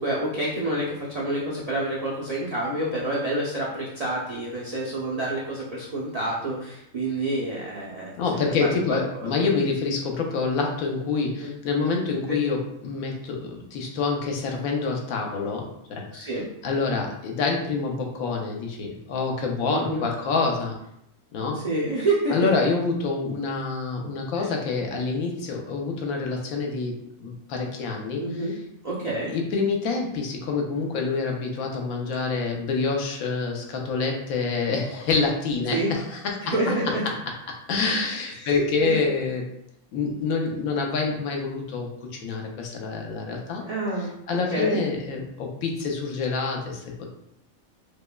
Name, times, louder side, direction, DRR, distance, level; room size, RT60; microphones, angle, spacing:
voice 1, 0.0-8.1 8.6-9.3 11.2-11.5 16.1-16.4 19.7-20.0 21.5-22.5 24.4-24.5 28.2-28.5 28.8-29.3 35.7-35.9 36.4-37.0 38.4-39.0 43.6-44.8, right 2 dB, 70° right, -5 dB, 0.3 m, -28 dB
voice 2, 8.2-16.4 16.6-20.8 21.3-21.6 22.3-26.9 27.2-28.2 29.3-36.5 37.7-39.4 39.9-43.6 44.3-47.1, left 4 dB, 90° left, 1 dB, 1.1 m, -27 dB
5.0 x 2.2 x 2.2 m, 0.78 s
omnidirectional pair, 1.5 m